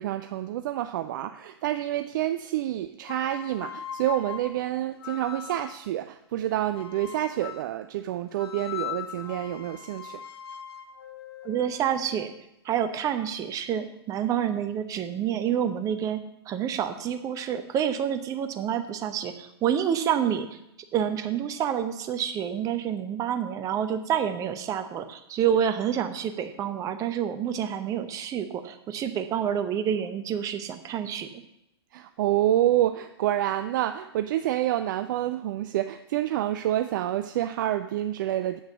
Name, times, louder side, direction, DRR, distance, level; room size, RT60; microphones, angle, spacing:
voice 1, 0.0-10.2 31.9-38.6, right 13 dB, 45° right, 9 dB, 0.4 m, -28 dB
sound 1, 3.0-5.9 6.7-7.8 8.4-12.4, left 9 dB, 65° left, 0.7 m, -40 dB
voice 2, 11.4-12.3 12.6-20.5 20.9-31.3, right 9 dB, 25° right, 8 dB, 0.8 m, -28 dB
7.9 x 6.5 x 6.8 m, 0.82 s
figure-of-eight pair, 110°, 14 cm